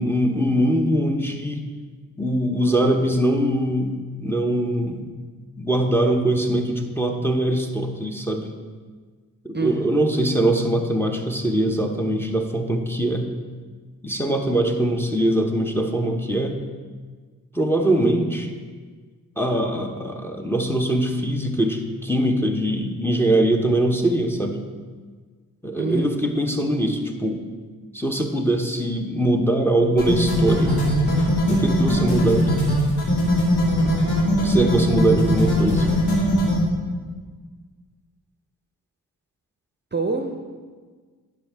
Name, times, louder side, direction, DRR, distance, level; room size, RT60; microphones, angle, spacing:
voice 1, 0.0-1.6 2.2-5.1 5.6-8.5 9.4-13.3 14.0-16.6 17.5-18.5 19.4-24.6 25.6-27.4 27.9-30.8 31.5-32.7 34.4-35.9, right 1 dB, 5° left, 4 dB, 0.8 m, -22 dB
voice 2, 9.5-10.0 25.8-26.2 39.9-40.3, right 3 dB, 25° right, 4 dB, 0.7 m, -26 dB
sound 1, 30.0-36.5, left 1 dB, 80° left, 1.8 m, -20 dB
10.0 x 5.0 x 3.4 m, 1.5 s
cardioid pair, 45°, 39 cm